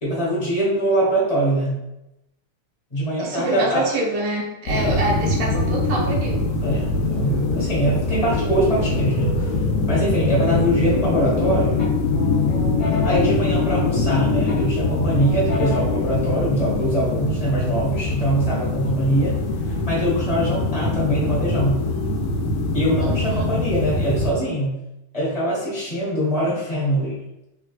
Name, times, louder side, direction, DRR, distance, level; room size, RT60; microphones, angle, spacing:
voice 1, 0.0-1.8 2.9-3.9 4.8-4.9 6.6-9.6 9.9-11.8 13.0-19.4 19.7-21.9 22.7-24.8 25.1-27.2, right 1 dB, 25° left, -6 dB, 0.8 m, -23 dB
voice 2, 3.2-6.5 23.0-23.4, right 2 dB, 60° right, -2 dB, 0.9 m, -26 dB
sound 1, 4.7-24.3, left 3 dB, 80° left, 1.4 m, -23 dB
sound 2, 10.8-11.4 11.8-14.1 14.5-16.1, left 2 dB, 55° left, 0.3 m, -34 dB
3.6 x 3.4 x 2.3 m, 0.87 s
omnidirectional pair, 2.3 m